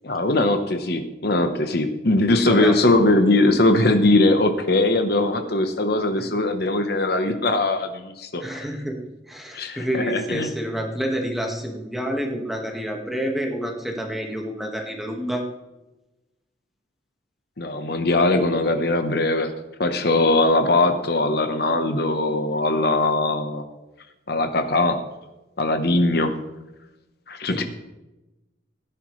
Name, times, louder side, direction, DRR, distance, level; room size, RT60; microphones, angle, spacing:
voice 1, 0.0-8.7 9.5-10.5 17.6-19.5 19.8-23.6 24.3-25.0 25.6-26.3 27.3-27.6, left 2 dB, 55° left, 7 dB, 1.1 m, -20 dB
voice 2, 2.3-2.7 6.2-6.3 8.4-15.4 27.5-27.6, equal, ahead, 1 dB, 1.7 m, -29 dB
16.5 x 10.5 x 3.2 m, 1.0 s
head